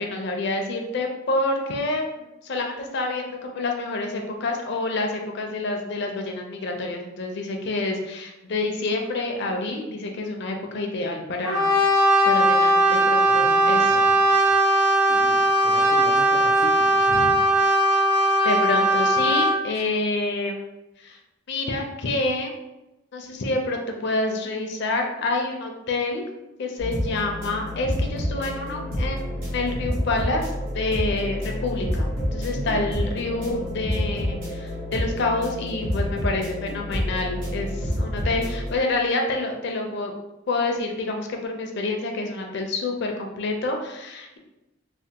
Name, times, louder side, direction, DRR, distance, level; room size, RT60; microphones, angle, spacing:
voice 1, 0.0-14.1 17.1-17.3 18.4-20.7 21.0-21.2 21.5-22.6 23.1-26.2 26.6-40.1 40.5-44.4, left 2 dB, 55° left, 2 dB, 0.5 m, -28 dB
Brass instrument, 11.4-19.6, right 1 dB, 65° right, 1.2 m, -19 dB
voice 2, 13.3-14.4 15.1-17.6 32.5-32.9, right 2 dB, 45° right, -4 dB, 0.4 m, -39 dB
sound 1, 26.8-38.7, left 1 dB, 85° right, 1.1 m, -28 dB
3.3 x 2.1 x 2.8 m, 0.96 s
head